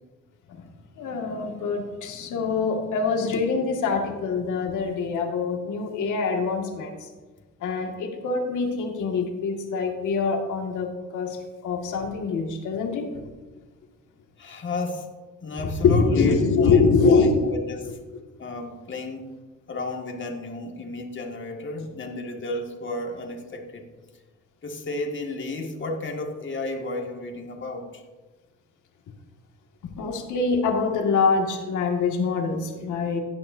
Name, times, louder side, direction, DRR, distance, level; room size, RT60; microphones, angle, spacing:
voice 1, 1.0-6.9 7.6-13.2 15.8-17.4 30.0-33.2, left 4 dB, 80° left, 1 dB, 2.1 m, -24 dB
voice 2, 14.4-15.1 15.4-18.0 18.4-19.3 19.7-23.9 24.6-28.0, left 2 dB, 40° left, 1 dB, 2.0 m, -33 dB
16.5 x 10.5 x 2.8 m, 1.3 s
cardioid pair, 90°, 30 cm